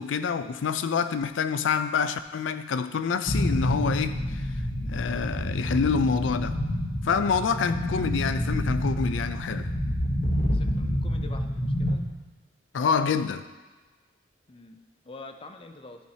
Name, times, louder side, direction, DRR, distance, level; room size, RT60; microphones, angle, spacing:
voice 1, 0.0-4.4 4.9-6.6 7.0-9.7 12.7-13.4, left 5 dB, 90° left, 0.4 m, -27 dB
sound 1, 3.3-12.0, equal, 45° left, 0.9 m, -28 dB
voice 2, 10.8-12.0 14.5-14.8 15.1-16.0, left 3 dB, 30° left, 0.5 m, -45 dB
12.5 x 4.6 x 2.8 m
head